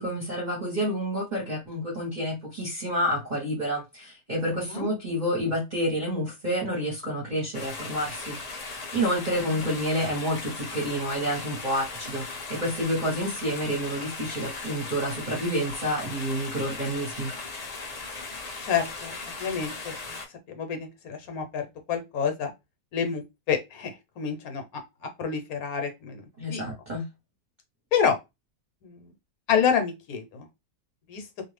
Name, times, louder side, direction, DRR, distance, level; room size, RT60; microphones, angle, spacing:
voice 1, 0.0-12.2 12.5-17.3 26.4-27.0, equal, 35° right, 0.9 m, -29 dB
sound 1, 7.5-20.3, left 3 dB, 85° left, 0.3 m, -38 dB
voice 2, 18.6-20.0 20.5-22.5 22.9-23.2 23.5-24.8 25.2-26.6 27.9-28.2 28.8-29.1 29.5-30.4 31.1-31.2, left 7 dB, 70° left, 1.1 m, -28 dB
2.5 x 2.2 x 3.2 m
omnidirectional pair, 1.6 m